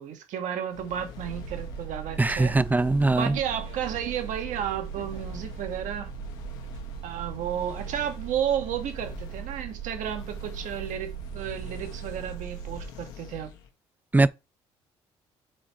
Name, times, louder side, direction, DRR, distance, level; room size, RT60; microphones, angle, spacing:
voice 1, 0.0-2.6 3.2-6.1 7.0-13.5, right 9 dB, 65° right, 1.2 m, -32 dB
sound 1, 0.7-13.7, left 8 dB, 85° left, 1.3 m, -45 dB
sound 2, 1.2-12.9, right 12 dB, 85° right, 2.1 m, -39 dB
voice 2, 2.2-3.4 14.1-14.3, right 2 dB, 10° right, 0.4 m, -21 dB
4.9 x 4.3 x 5.8 m
hypercardioid pair, 55°, 14 cm